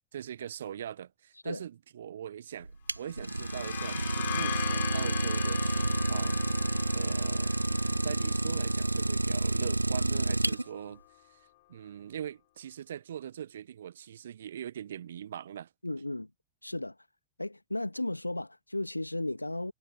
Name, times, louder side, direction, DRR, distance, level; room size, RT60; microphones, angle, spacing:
voice 1, 0.1-6.7 6.9-11.0 11.3-15.7, right 10 dB, 65° right, 1.1 m, -42 dB
Idling, 2.6-10.9, right 2 dB, 85° right, 0.5 m, -29 dB
sound 1, 3.1-10.7, left 19 dB, 50° left, 4.4 m, -40 dB
voice 2, 15.8-16.3 16.6-17.0 17.4-19.7, left 2 dB, 85° left, 2.0 m, -34 dB
figure-of-eight pair, 90°, 0 cm